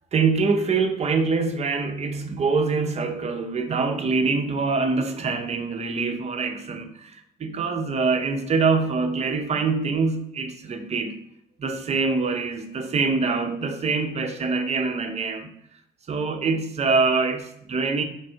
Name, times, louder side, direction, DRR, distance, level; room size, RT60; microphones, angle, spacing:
voice 1, 0.1-11.2 11.6-15.5 16.1-18.0, right 4 dB, 40° right, 6 dB, 0.7 m, -24 dB
4.6 x 2.5 x 4.3 m, 0.77 s
supercardioid pair, 70°, 17 cm